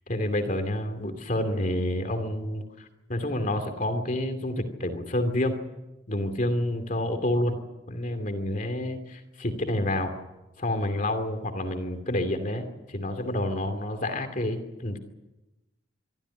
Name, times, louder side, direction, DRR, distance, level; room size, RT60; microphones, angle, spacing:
voice 1, 0.1-5.6 6.1-7.6 7.9-10.1 10.6-15.0, left 1 dB, 45° left, 7 dB, 2.6 m, -29 dB
24.5 x 14.0 x 9.9 m, 0.99 s
head